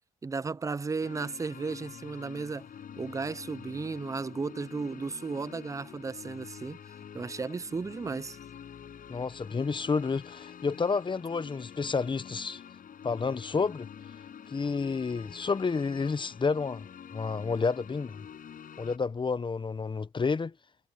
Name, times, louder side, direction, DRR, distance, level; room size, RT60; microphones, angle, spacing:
voice 1, 0.2-2.7 3.0-6.8 7.1-8.4, right 4 dB, 20° right, 0.5 m, -34 dB
sound 1, 1.0-19.0, left 8 dB, 55° left, 6.6 m, -47 dB
voice 2, 9.1-12.6 13.0-13.9 14.5-18.3 18.8-20.5, left 4 dB, 30° left, 1.2 m, -30 dB
supercardioid pair, 65°, 17 cm